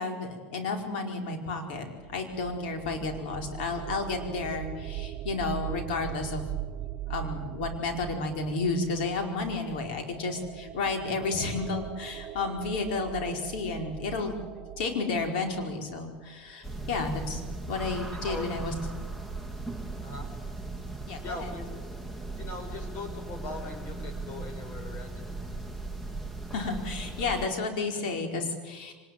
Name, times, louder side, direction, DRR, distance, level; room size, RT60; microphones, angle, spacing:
voice 1, 0.0-1.9 2.1-6.4 7.1-14.4 14.8-17.4 17.7-18.7 21.1-21.5 26.5-28.9, left 3 dB, 75° left, 3 dB, 4.8 m, -32 dB
sound 1, 2.0-16.6, right 14 dB, 45° right, 1.3 m, -41 dB
sound 2, 16.6-27.5, right 3 dB, 5° left, 2.1 m, -38 dB
voice 2, 21.2-21.8 22.4-25.3, left 2 dB, 40° left, 6 dB, 6.1 m, -40 dB
24.0 x 20.0 x 9.5 m, 1.4 s
supercardioid pair, 115°, 5 cm